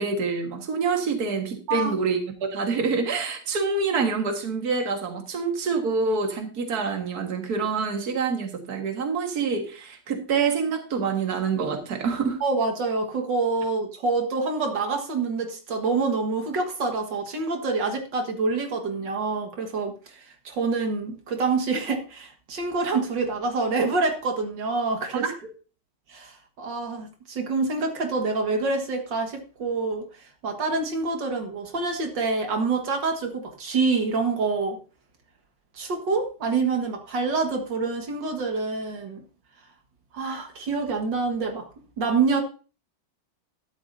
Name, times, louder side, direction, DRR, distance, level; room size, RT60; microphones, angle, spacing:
voice 1, 0.0-12.4 25.1-25.3, right 5 dB, 60° right, 4 dB, 2.1 m, -26 dB
voice 2, 12.4-25.2 26.1-30.0 30.4-34.8 35.7-39.2 40.1-41.7 42.0-42.4, right 4 dB, 80° right, 3 dB, 2.4 m, -26 dB
13.0 x 12.0 x 2.7 m, 0.35 s
omnidirectional pair, 1.9 m